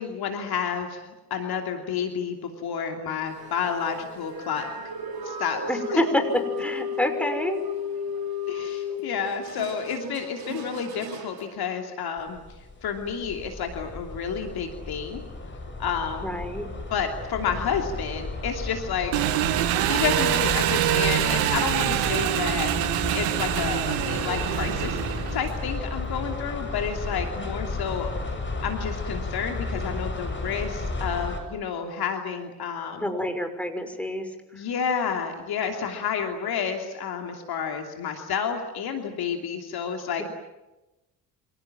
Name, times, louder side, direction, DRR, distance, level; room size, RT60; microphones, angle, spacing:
voice 1, 0.0-4.7 5.2-5.6 5.9-6.0 8.5-12.4 12.8-15.2 15.8-16.3 16.9-19.1 19.9-25.0 25.3-28.1 28.6-33.1 34.5-40.2, left 7 dB, 50° left, 4 dB, 3.0 m, -30 dB
sound 1, 3.3-11.5, left 4 dB, 45° right, 4.2 m, -34 dB
voice 2, 5.7-7.6 16.2-16.7 33.0-34.3, left 1 dB, 5° left, 6 dB, 5.9 m, -27 dB
sound 2, 12.2-31.4, left 2 dB, 25° left, 7.4 m, -34 dB
Engine, 19.1-25.6, right 12 dB, 65° right, 1.7 m, -25 dB
29.0 x 26.5 x 7.6 m, 1.0 s
figure-of-eight pair, 45°, 48 cm